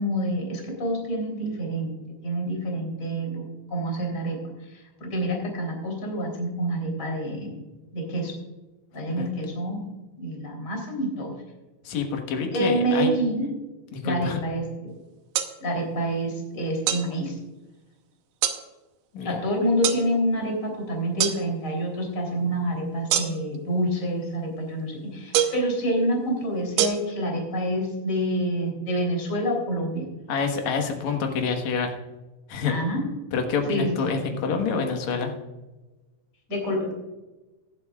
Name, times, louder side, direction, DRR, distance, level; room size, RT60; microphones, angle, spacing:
voice 1, 0.0-1.9 2.2-7.5 7.9-8.3 8.9-9.9 10.2-11.3 12.5-13.4 14.0-14.9 15.6-17.4 19.2-30.0 32.6-33.0 33.7-34.4 34.7-34.8 36.5-37.0, right 1 dB, 20° left, 0 dB, 3.1 m, -27 dB
voice 2, 11.8-13.2 13.9-14.4 19.1-19.4 30.3-31.9 32.5-32.8 33.3-35.3, left 5 dB, 65° left, 4 dB, 1.8 m, -27 dB
sound 1, 15.3-15.5 16.9-17.1 18.4-18.6 19.8-20.0 21.2-21.4 23.1-23.6 25.3-25.7 26.8-26.9, right 11 dB, 75° right, 2.6 m, -23 dB
16.5 x 11.5 x 2.4 m, 1.1 s
omnidirectional pair, 5.1 m